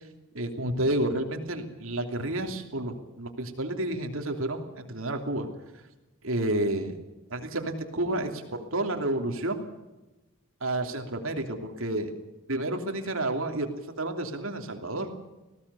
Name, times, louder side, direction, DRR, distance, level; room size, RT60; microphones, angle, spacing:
voice 1, 0.3-5.5 6.2-6.9 7.3-9.6 10.6-12.1 12.5-13.7 14.0-15.1, right 1 dB, 65° right, 5 dB, 2.9 m, -30 dB
20.0 x 17.0 x 8.3 m, 1.0 s
head